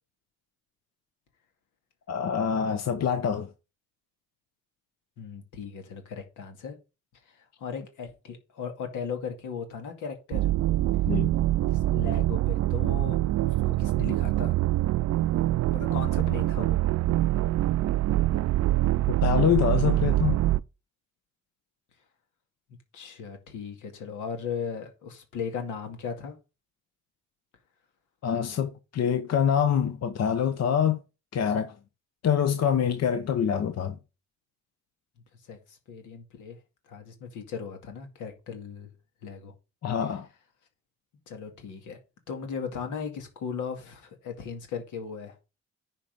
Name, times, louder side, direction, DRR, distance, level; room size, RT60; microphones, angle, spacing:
voice 1, 2.1-3.5 11.1-11.3 19.2-20.4 28.2-31.0 31.3-31.7 32.2-34.0 39.8-40.3, left 8 dB, 60° left, 1.0 m, -25 dB
voice 2, 5.2-6.8 7.3-10.5 11.7-13.2 13.4-14.5 15.7-16.8 22.9-26.4 35.4-36.6 36.9-38.9 39.2-39.5 41.3-42.0 42.3-45.4, left 6 dB, 85° left, 2.4 m, -37 dB
sound 1, 10.3-20.6, right 15 dB, 60° right, 0.4 m, -24 dB
10.0 x 4.4 x 5.3 m
cardioid pair, 90°, 30 cm